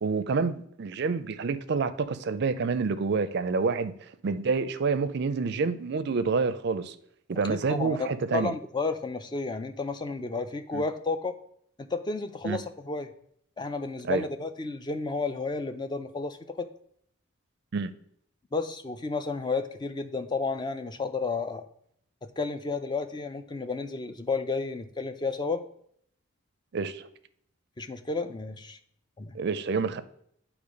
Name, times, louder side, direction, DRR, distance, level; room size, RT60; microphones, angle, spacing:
voice 1, 0.0-3.9 4.2-7.0 7.3-8.5 10.7-10.8 12.4-12.6 14.0-14.2 17.7-17.9 26.7-27.0 29.3-30.0, right 4 dB, 55° right, 0.4 m, -28 dB
voice 2, 7.3-11.4 11.8-13.1 13.6-16.7 18.5-21.6 22.2-25.6 27.8-28.8 29.2-29.4, left 3 dB, 20° left, 0.4 m, -32 dB
8.1 x 3.0 x 5.1 m
head